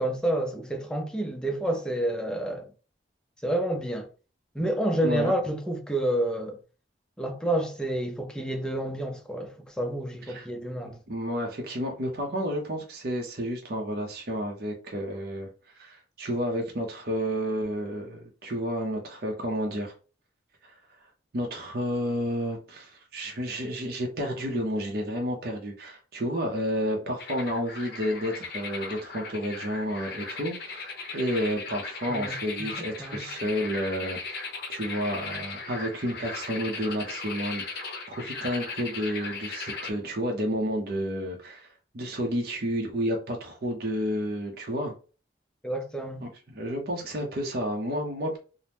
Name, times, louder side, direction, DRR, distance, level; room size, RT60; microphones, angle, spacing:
voice 1, 0.0-2.7 3.4-4.1 4.5-6.6 7.2-11.0 32.1-32.7 33.0-33.3 45.6-46.3, right 1 dB, 5° left, 0.4 m, -29 dB
voice 2, 11.1-15.5 15.7-19.9 20.6-20.7 21.3-37.9 38.2-44.9 46.2-48.4, equal, 55° right, 0.6 m, -31 dB
sound 1, 27.2-39.9, left 4 dB, 55° left, 0.6 m, -37 dB
2.8 x 2.0 x 3.4 m
head